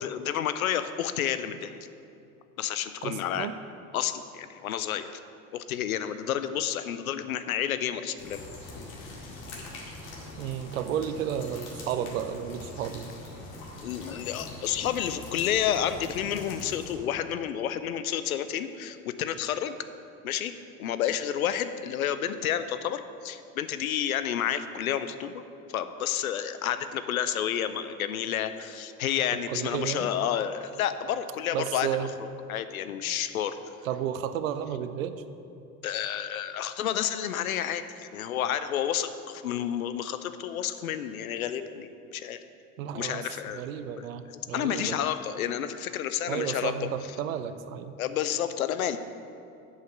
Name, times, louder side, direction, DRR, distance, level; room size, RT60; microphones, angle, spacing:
voice 1, 0.0-1.8 2.6-3.5 3.9-5.2 5.5-8.4 13.8-19.8 20.2-20.5 20.8-25.4 25.7-33.6 35.8-42.4 42.9-44.1 44.5-46.9 48.0-49.0, left 10 dB, 70° left, 11 dB, 0.6 m, -30 dB
voice 2, 3.0-3.5 10.4-13.1 29.5-30.1 31.5-32.1 33.8-35.2 42.8-43.3 43.5-44.2 44.5-45.0 46.3-47.9, right 9 dB, 65° right, 11 dB, 0.6 m, -32 dB
sound 1, 8.2-16.9, left 2 dB, 55° left, 2.2 m, -43 dB
7.6 x 5.6 x 7.7 m, 2.6 s
figure-of-eight pair, 70°, 44 cm